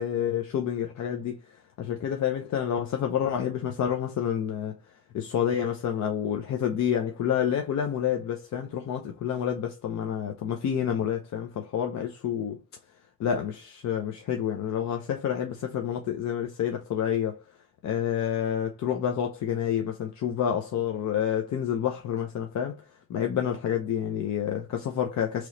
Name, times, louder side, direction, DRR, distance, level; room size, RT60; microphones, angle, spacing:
voice 1, 0.0-1.4 1.8-4.8 5.1-12.6 13.2-17.4 17.8-22.8 23.1-25.5, left 9 dB, 65° left, 0.7 m, -28 dB
3.1 x 3.0 x 3.8 m
cardioid pair, 90°, 30 cm